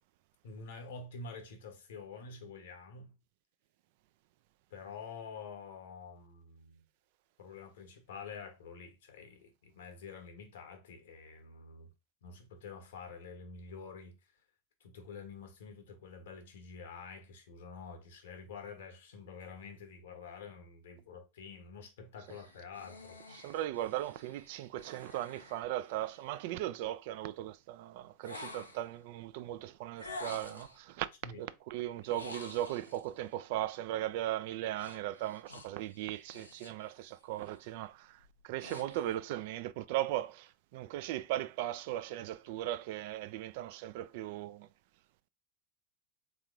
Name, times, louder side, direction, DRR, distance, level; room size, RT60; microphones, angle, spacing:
voice 1, 0.4-3.2 4.7-6.8 7.4-11.9 12.2-14.1 14.8-23.4 31.2-31.4, left 5 dB, 70° left, 1.1 m, -48 dB
sound 1, 22.3-26.5 28.2-29.0 30.0-30.8 32.0-33.1 34.8-36.9 37.2-37.6 38.1-39.2, left 2 dB, 90° left, 0.6 m, -49 dB
voice 2, 23.3-31.1 31.4-44.7, right 14 dB, 55° right, 0.3 m, -38 dB
3.6 x 3.0 x 3.6 m
figure-of-eight pair, 85°, 0 cm